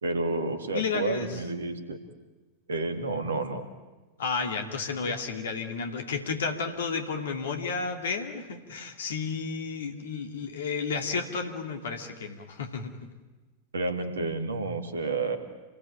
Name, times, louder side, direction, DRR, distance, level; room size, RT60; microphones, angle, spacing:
voice 1, 0.0-2.0 2.7-3.6 13.7-15.4, right 3 dB, 70° right, 8 dB, 2.5 m, -30 dB
voice 2, 0.7-1.4 4.2-13.0, left 5 dB, 65° left, 5 dB, 2.5 m, -32 dB
28.0 x 20.0 x 8.8 m, 1.2 s
figure-of-eight pair, 90°, 0 cm